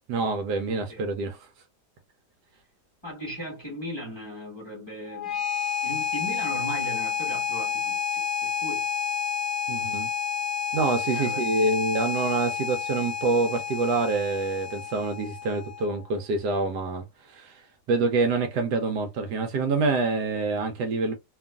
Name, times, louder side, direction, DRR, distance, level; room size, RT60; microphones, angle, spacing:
voice 1, 0.1-1.4 9.7-10.1 10.7-17.6 17.9-21.1, right 3 dB, 75° right, 1.1 m, -26 dB
voice 2, 3.0-5.4 5.8-8.9 11.1-11.5, equal, 15° left, 1.2 m, -37 dB
sound 1, 5.1-16.1, left 7 dB, 60° left, 1.1 m, -30 dB
2.9 x 2.4 x 2.3 m
omnidirectional pair, 1.9 m